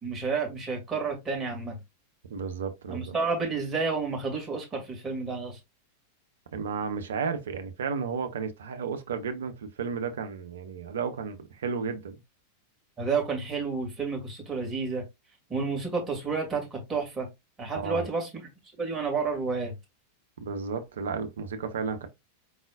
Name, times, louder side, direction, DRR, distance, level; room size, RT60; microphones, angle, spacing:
voice 1, 0.0-1.8 2.9-5.6 13.0-15.0 15.5-17.3 17.6-18.3 18.8-19.7, right 4 dB, 20° right, 2.2 m, -30 dB
voice 2, 2.3-3.2 6.5-12.2 17.7-18.1 20.4-22.1, right 5 dB, 65° right, 0.8 m, -33 dB
4.9 x 4.0 x 2.4 m
figure-of-eight pair, 90°, 0 cm